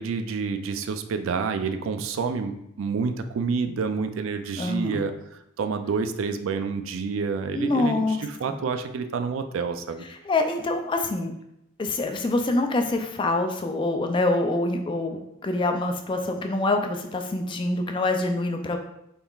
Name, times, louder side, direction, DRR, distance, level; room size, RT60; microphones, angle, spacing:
voice 1, 0.0-2.5 2.8-5.1 5.6-10.0, right 5 dB, 65° right, 8 dB, 0.3 m, -28 dB
voice 2, 4.6-5.0 7.5-8.6 10.1-11.3 11.8-18.8, left 2 dB, 25° left, 5 dB, 0.3 m, -25 dB
4.0 x 3.6 x 2.3 m, 0.80 s
head